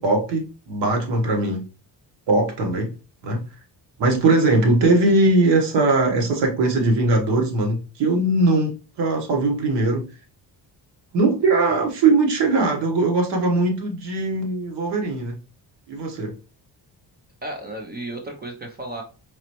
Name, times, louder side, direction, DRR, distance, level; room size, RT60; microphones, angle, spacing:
voice 1, 0.0-1.6 2.3-2.9 3.2-3.4 4.0-10.0 11.1-15.4 15.9-16.4, right 2 dB, 85° right, 1.4 m, -20 dB
voice 2, 17.4-19.0, right 1 dB, 25° right, 0.5 m, -33 dB
4.0 x 3.1 x 2.9 m
cardioid pair, 170°, 41 cm